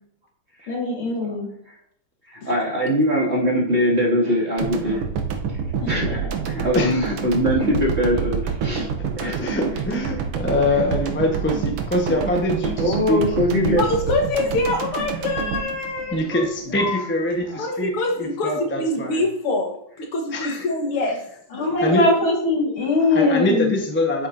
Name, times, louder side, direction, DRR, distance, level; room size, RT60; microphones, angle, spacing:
voice 1, 0.7-1.5 5.8-6.3 21.5-23.8, left 2 dB, 70° left, -1 dB, 2.8 m, -21 dB
voice 2, 2.3-5.0 5.9-6.2 6.5-8.9 9.2-9.5 12.8-13.8 17.5-17.6, equal, 30° right, -5 dB, 2.6 m, -22 dB
sound 1, 4.6-16.8, right 6 dB, 80° right, 1.8 m, -27 dB
voice 3, 6.7-7.1 8.8-8.9 9.2-13.2 13.6-13.7 16.1-17.9 18.2-19.3 20.3-20.7 21.8-22.1 23.1-24.3, left 1 dB, 10° left, 1 dB, 0.6 m, -24 dB
voice 4, 13.8-16.5 16.8-17.0 17.6-21.2 21.5-21.8, left 2 dB, 90° left, 2 dB, 2.4 m, -25 dB
9.3 x 8.3 x 2.7 m, 0.67 s
omnidirectional pair, 2.4 m